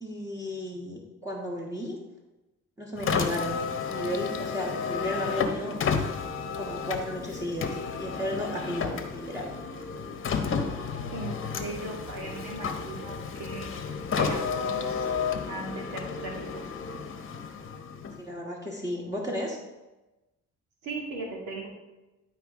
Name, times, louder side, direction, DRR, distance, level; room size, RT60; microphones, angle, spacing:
voice 1, 0.0-2.0 2.8-3.6 3.9-5.8 6.6-9.5 18.2-19.6, equal, 10° right, -4 dB, 1.5 m, -34 dB
Car, 2.9-18.4, left 5 dB, 45° left, 0.9 m, -32 dB
voice 2, 11.1-13.7 14.2-15.0 15.5-16.4 20.8-21.7, right 2 dB, 80° right, -1 dB, 2.3 m, -38 dB
11.0 x 4.7 x 3.6 m, 1.1 s
cardioid pair, 90°, 30 cm